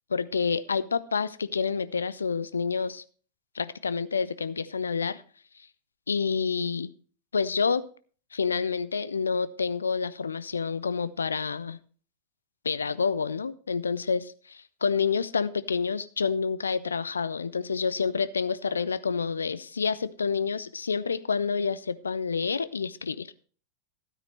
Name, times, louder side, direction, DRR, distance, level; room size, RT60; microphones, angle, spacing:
voice 1, 0.1-3.0 3.5-5.2 6.1-6.9 7.3-7.8 8.3-11.8 12.6-23.3, left 5 dB, 75° left, 17 dB, 0.5 m, -28 dB
12.5 x 8.9 x 3.2 m, 0.40 s
figure-of-eight pair, 90°, 0 cm